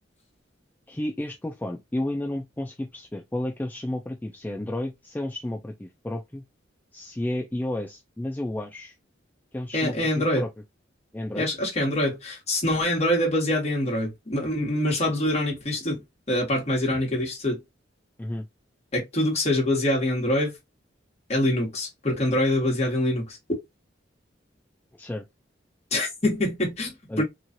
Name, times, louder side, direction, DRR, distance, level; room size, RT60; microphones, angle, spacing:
voice 1, 0.9-6.4 6.9-8.9 9.5-10.5 11.1-11.5 18.2-18.5 25.0-25.2 27.1-27.2, left 1 dB, 10° left, 0.3 m, -32 dB
voice 2, 9.7-10.4 11.3-16.0 16.3-17.6 18.9-20.6 21.3-23.6 25.9-27.2, left 1 dB, 35° left, 1.4 m, -25 dB
3.0 x 2.4 x 2.6 m
head